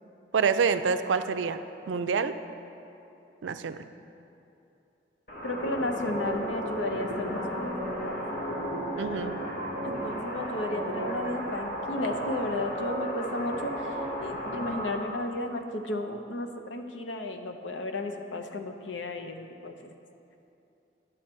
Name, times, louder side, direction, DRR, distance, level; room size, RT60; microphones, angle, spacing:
voice 1, 0.3-2.3 3.4-3.8 9.0-9.5, right 5 dB, 80° right, 10 dB, 0.4 m, -27 dB
sound 1, 5.3-15.0, equal, 50° left, 1.3 m, -33 dB
voice 2, 5.4-8.2 9.8-19.9, left 2 dB, 80° left, 5 dB, 0.7 m, -34 dB
10.5 x 6.4 x 4.4 m, 2.7 s
head